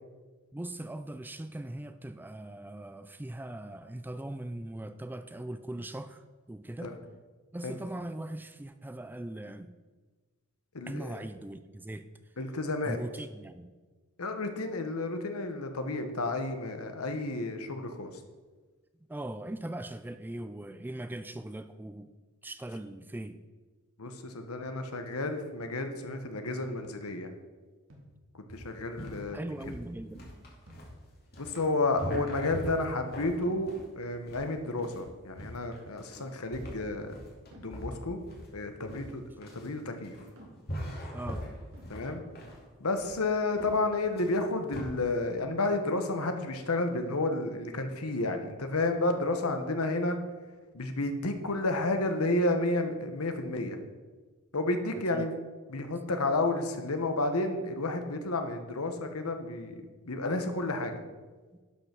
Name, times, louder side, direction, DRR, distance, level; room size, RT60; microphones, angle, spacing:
voice 1, 0.5-6.9 7.5-9.7 10.9-12.1 12.8-13.7 19.1-22.1 22.4-23.4 29.3-30.2 41.1-41.5 54.9-55.3, right 1 dB, 10° right, 10 dB, 0.4 m, -40 dB
voice 2, 10.7-11.2 12.4-13.0 14.2-18.1 24.0-27.3 28.3-29.4 31.4-37.2 37.6-38.2 38.5-40.2 41.9-42.2 42.8-50.2 50.7-53.8 54.5-55.3 55.7-61.0, left 2 dB, 75° left, 6 dB, 1.2 m, -31 dB
sound 1, 26.6-26.9 27.9-28.3 29.3-29.7 30.7-31.0 32.1-32.4 33.4-33.7 34.8-35.1 36.2-36.4 37.5-37.8 38.9-39.2 40.4-40.7 41.7-41.8, right 1 dB, 65° right, 2.1 m, -54 dB
sound 2, 28.5-44.8, equal, 45° left, 2.6 m, -42 dB
11.5 x 5.7 x 6.0 m, 1.3 s
head